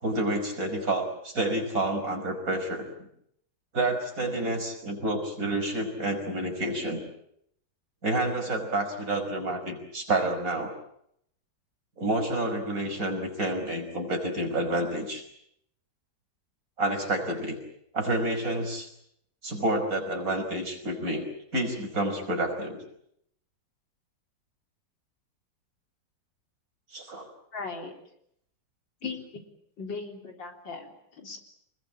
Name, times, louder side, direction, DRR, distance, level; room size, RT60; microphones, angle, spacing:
voice 1, 0.0-2.8 3.7-7.0 8.0-10.8 12.0-15.2 16.8-17.6 17.9-18.9 19.4-21.2 21.5-22.8 26.9-27.3 29.0-29.1, right 1 dB, 45° right, 3 dB, 5.7 m, -29 dB
voice 2, 27.5-27.9 29.0-29.2 29.8-31.4, left 4 dB, 85° left, 3 dB, 4.5 m, -38 dB
27.0 x 21.0 x 8.8 m, 0.74 s
omnidirectional pair, 2.0 m